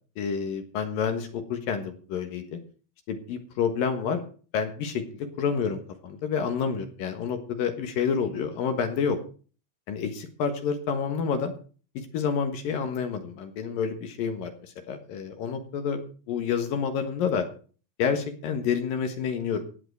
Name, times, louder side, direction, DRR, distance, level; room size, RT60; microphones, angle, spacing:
voice 1, 0.2-2.6 3.1-4.2 4.5-9.2 9.9-11.5 11.9-16.0 16.3-17.4 18.0-19.6, left 6 dB, 65° left, 7 dB, 2.5 m, -29 dB
18.0 x 7.9 x 4.7 m, 0.39 s
omnidirectional pair, 5.8 m